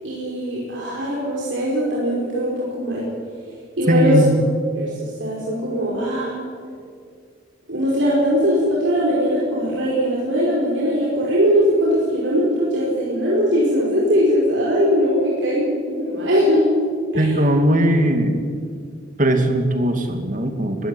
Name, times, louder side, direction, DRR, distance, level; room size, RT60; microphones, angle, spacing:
voice 1, 0.0-3.0 3.8-4.2 4.7-6.3 7.7-16.7 17.1-17.3, equal, 85° right, -5 dB, 5.0 m, -20 dB
voice 2, 3.9-4.4 17.1-18.4 19.2-20.9, right 1 dB, 45° right, 6 dB, 2.5 m, -18 dB
22.0 x 15.0 x 9.1 m, 2.1 s
head